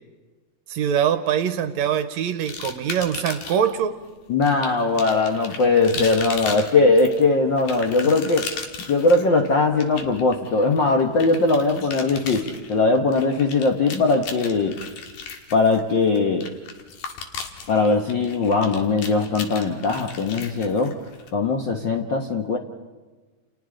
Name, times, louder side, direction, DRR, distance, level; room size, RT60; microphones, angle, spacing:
voice 1, 0.7-4.0, right 8 dB, 70° right, 9 dB, 2.0 m, -23 dB
sound 1, 2.5-3.7 4.4-21.3, left 5 dB, 80° left, 3.2 m, -36 dB
voice 2, 4.3-8.5 8.9-14.8 15.5-16.5 17.7-21.0 21.3-22.6, left 3 dB, 55° left, 2 dB, 1.3 m, -20 dB
30.0 x 29.5 x 3.9 m, 1.3 s
omnidirectional pair, 3.5 m